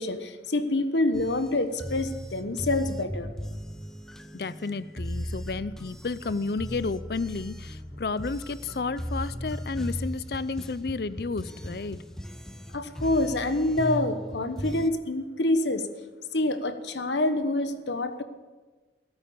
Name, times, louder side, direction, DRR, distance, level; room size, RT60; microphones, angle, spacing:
voice 1, 0.0-3.3 12.7-15.9 16.3-18.2, left 2 dB, 90° left, 9 dB, 1.1 m, -26 dB
sound 1, 1.1-14.9, equal, 5° left, 0.6 m, -37 dB
voice 2, 4.3-12.0, left 4 dB, 60° left, 16 dB, 0.5 m, -32 dB
16.0 x 9.0 x 6.9 m, 1.3 s
head